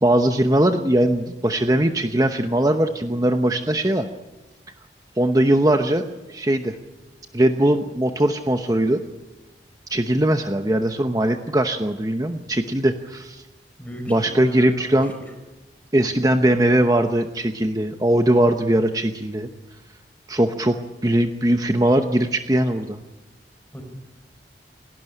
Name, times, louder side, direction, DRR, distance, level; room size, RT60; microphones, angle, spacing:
voice 1, 0.0-4.0 5.2-6.8 7.3-9.0 9.9-13.4 14.1-15.1 15.9-19.5 20.3-20.8 21.0-23.0, right 1 dB, 20° right, 6 dB, 0.9 m, -20 dB
voice 2, 13.8-15.1 23.7-23.8, right 1 dB, 10° left, 4 dB, 4.5 m, -35 dB
28.5 x 12.5 x 10.0 m, 1.1 s
head